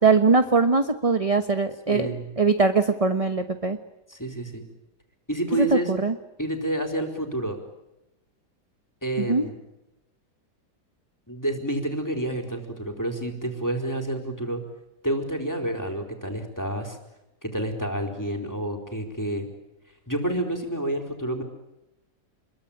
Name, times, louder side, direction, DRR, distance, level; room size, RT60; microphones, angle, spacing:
voice 1, 0.0-2.1 2.4-3.8 5.5-6.1 9.2-9.4, right 4 dB, 25° right, 8 dB, 1.2 m, -21 dB
voice 2, 1.9-2.3 4.1-4.6 5.3-5.9 6.4-7.6 9.0-9.5 11.3-14.6 15.0-17.0 17.4-19.5 20.1-21.4, right 1 dB, 10° left, 4 dB, 4.4 m, -29 dB
29.0 x 22.5 x 8.8 m, 0.95 s
omnidirectional pair, 1.8 m